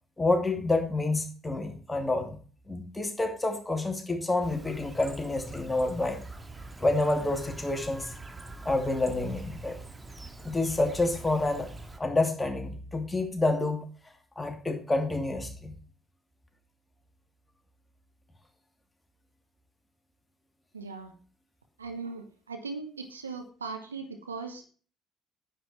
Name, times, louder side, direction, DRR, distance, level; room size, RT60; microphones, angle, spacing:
voice 1, 0.2-2.4 2.7-6.2 6.8-8.1 8.6-9.8 10.4-11.7 12.0-13.9 14.4-15.7, left 2 dB, 15° left, 4 dB, 2.6 m, -28 dB
Chirp tweet, 4.4-12.0, right 2 dB, 20° right, 2.0 m, -44 dB
voice 2, 20.7-21.1 21.8-24.7, right 4 dB, 85° right, 5 dB, 1.1 m, -39 dB
10.0 x 8.0 x 4.5 m, 0.38 s
figure-of-eight pair, 50°, 0 cm